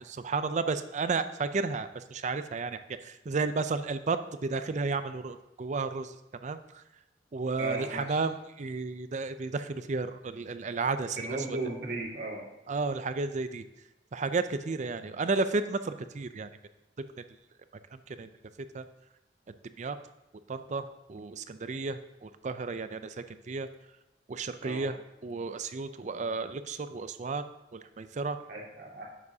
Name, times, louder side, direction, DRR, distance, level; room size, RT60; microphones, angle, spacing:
voice 1, 0.0-6.2 6.4-6.8 7.3-11.6 12.7-13.6 14.1-16.5 17.0-17.1 17.9-18.3 18.7-18.8 19.8-20.0 20.5-23.2 23.5-23.7 24.3-25.0 25.2-27.4 27.7-28.4, right 4 dB, 40° right, 11 dB, 0.5 m, -32 dB
voice 2, 7.6-8.2 11.2-12.5 24.6-24.9 28.5-29.1, right 2 dB, 65° right, -3 dB, 2.3 m, -36 dB
11.0 x 7.3 x 2.8 m, 0.94 s
head